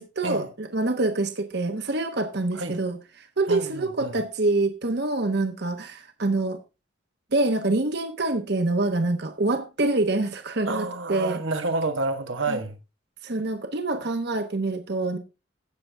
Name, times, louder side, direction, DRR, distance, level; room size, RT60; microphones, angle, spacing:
voice 1, 0.0-6.6 7.3-11.4 12.5-12.6 13.2-15.2, right 2 dB, 60° right, 1.1 m, -26 dB
voice 2, 3.5-4.2 10.7-12.8, right 3 dB, 85° right, 1.4 m, -29 dB
16.5 x 6.9 x 3.4 m
head